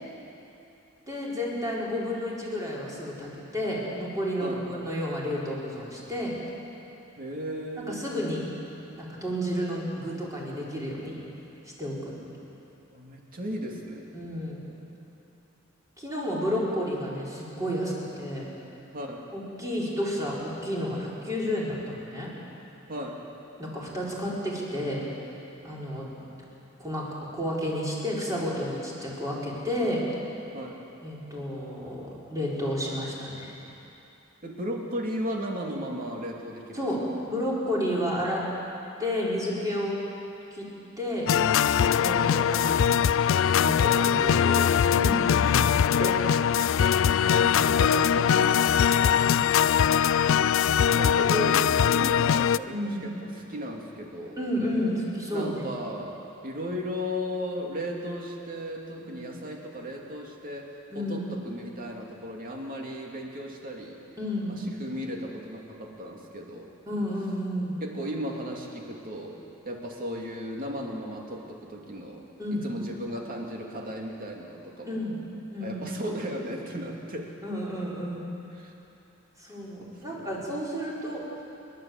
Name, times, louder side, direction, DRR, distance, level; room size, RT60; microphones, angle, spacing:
voice 1, 1.0-6.4 7.9-8.4 9.0-11.2 11.8-12.2 14.1-14.6 16.0-18.5 19.3-22.3 23.6-25.0 25.6-26.2 26.8-27.1 27.3-30.0 31.0-33.5 36.7-38.4 39.0-40.0 40.5-40.7 41.0-41.3 42.0-43.1 43.6-44.2 44.9-45.2 45.6-46.2 52.7-53.0 54.4-55.7 59.1-59.2 60.9-61.2 64.2-64.6 66.9-67.8 72.4-72.7 74.9-75.2 75.5-75.8 77.4-78.3 79.4-81.2, equal, 15° right, -6 dB, 4.6 m, -31 dB
voice 2, 7.2-8.0 12.9-14.1 18.9-19.3 22.9-23.2 30.5-30.8 34.4-36.9 44.1-45.5 47.3-48.7 50.9-54.4 55.3-64.0 64.5-66.7 67.8-69.4 69.6-72.3 72.6-75.0 75.6-77.3 78.6-78.7 79.8-80.4, equal, 45° right, 0 dB, 2.6 m, -35 dB
sound 1, 41.3-52.6, left 8 dB, 65° left, 0.3 m, -22 dB
29.0 x 11.5 x 7.9 m, 3.0 s
head